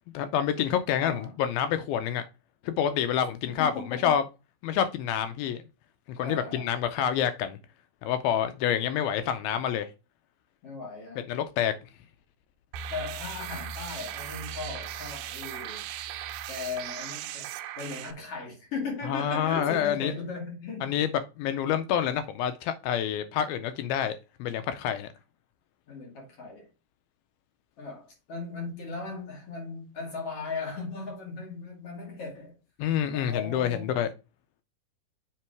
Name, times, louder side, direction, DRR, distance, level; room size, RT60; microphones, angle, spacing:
voice 1, 0.1-2.2 2.6-3.7 4.0-4.2 4.6-5.6 6.1-7.6 8.0-9.9 11.3-11.7 19.1-20.1 20.8-24.1 24.4-25.1 32.8-34.1, left 9 dB, 80° left, 2.2 m, -27 dB
voice 2, 1.0-1.4 3.5-4.1 6.2-6.7 10.6-11.3 12.9-15.9 16.5-17.5 17.8-20.9 25.9-26.7 27.8-32.5 33.1-34.0, left 4 dB, 50° left, 2.2 m, -37 dB
sound 1, 12.7-18.1, right 9 dB, 80° right, 2.4 m, -38 dB
7.4 x 3.8 x 4.5 m
omnidirectional pair, 4.6 m